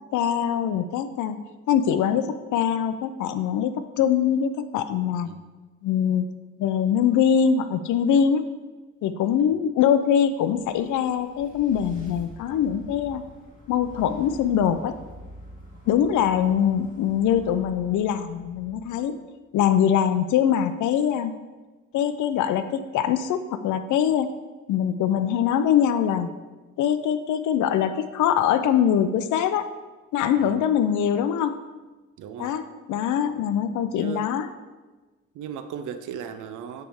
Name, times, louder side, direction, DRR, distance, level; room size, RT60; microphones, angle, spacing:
voice 1, 0.1-1.4 1.7-5.3 5.8-6.3 6.6-8.4 9.0-13.2 13.7-14.9 15.9-19.2 19.5-21.3 21.9-24.3 24.7-26.3 26.8-29.7 30.1-31.6 32.4-34.5, left 8 dB, 75° left, 11 dB, 0.5 m, -23 dB
sound 1, 10.2-19.5, equal, 25° left, 1.3 m, -46 dB
voice 2, 32.2-32.6 33.9-34.3 35.3-36.8, right 8 dB, 85° right, 10 dB, 0.6 m, -37 dB
8.6 x 3.4 x 3.5 m, 1.3 s
cardioid pair, 90°, 30 cm